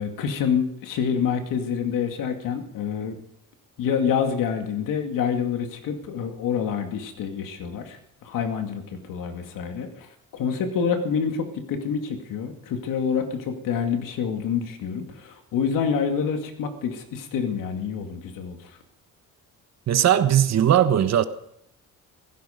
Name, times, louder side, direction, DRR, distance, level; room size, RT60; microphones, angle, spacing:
voice 1, 0.0-3.2 3.8-10.1 10.3-18.7, left 7 dB, 85° left, 2.4 m, -27 dB
voice 2, 19.9-21.2, right 10 dB, 55° right, 1.3 m, -18 dB
16.5 x 15.5 x 5.2 m
cardioid pair, 120°, 32 cm